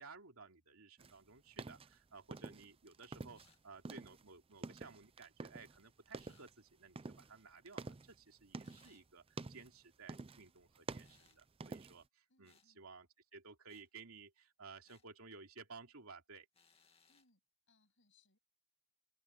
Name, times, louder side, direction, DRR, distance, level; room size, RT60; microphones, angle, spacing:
voice 1, 0.0-16.5, right 4 dB, 75° right, 2.9 m, -57 dB
sound 1, 1.0-3.5 3.8-5.8 6.1-6.5 6.9-8.9 9.3-9.8 10.1-10.5 10.7-12.1, right 3 dB, 25° right, 0.5 m, -49 dB
sound 2, 3.3-3.7 6.2-6.5 8.6-9.1 11.0-11.4 12.4-12.7 13.7-13.9 14.8-15.1 16.5-17.3, left 5 dB, 25° left, 2.3 m, -71 dB
voice 2, 12.3-12.9 17.1-17.4 17.7-18.4, left 3 dB, 60° left, 7.9 m, -74 dB
open air
head